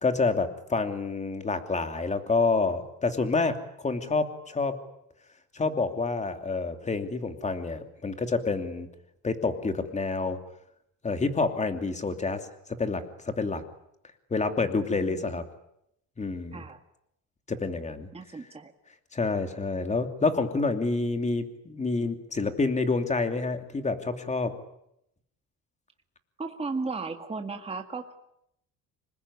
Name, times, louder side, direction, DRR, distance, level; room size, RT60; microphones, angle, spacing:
voice 1, 0.0-4.8 5.5-8.9 9.2-10.4 11.0-12.4 12.8-13.6 14.3-15.4 16.2-16.6 17.5-18.1 19.1-24.5, left 3 dB, 20° left, 7 dB, 2.8 m, -28 dB
voice 2, 14.9-15.4 16.5-16.8 18.1-18.7 26.4-28.1, right 4 dB, 15° right, 5 dB, 1.9 m, -35 dB
27.0 x 20.5 x 9.8 m, 0.80 s
cardioid pair, 140°, 35 cm